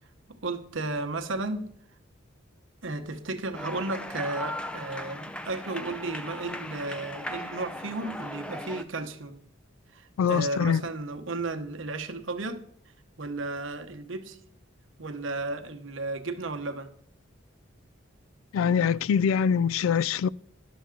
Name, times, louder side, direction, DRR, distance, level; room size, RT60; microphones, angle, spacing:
voice 1, 0.3-1.7 2.8-9.4 9.9-12.7 13.2-14.4 15.0-16.9, right 2 dB, 65° right, 1.0 m, -34 dB
sound 1, 3.5-8.8, left 1 dB, 5° left, 0.4 m, -38 dB
voice 2, 10.2-10.8 18.5-20.3, left 7 dB, 80° left, 0.3 m, -24 dB
11.5 x 6.9 x 3.7 m
head